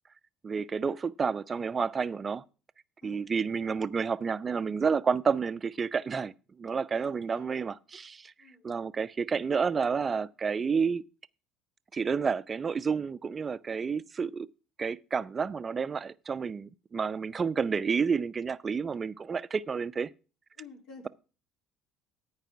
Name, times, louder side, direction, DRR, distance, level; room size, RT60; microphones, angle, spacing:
voice 1, 0.4-2.4 3.0-6.3 6.6-8.3 8.6-11.0 11.9-14.5 14.8-20.1, right 5 dB, 30° right, 0.5 m, -30 dB
voice 2, 3.0-3.3 6.9-7.6 8.4-8.7 20.6-21.1, left 4 dB, 70° left, 3.2 m, -50 dB
14.0 x 4.9 x 5.9 m
supercardioid pair, 80°, 0 cm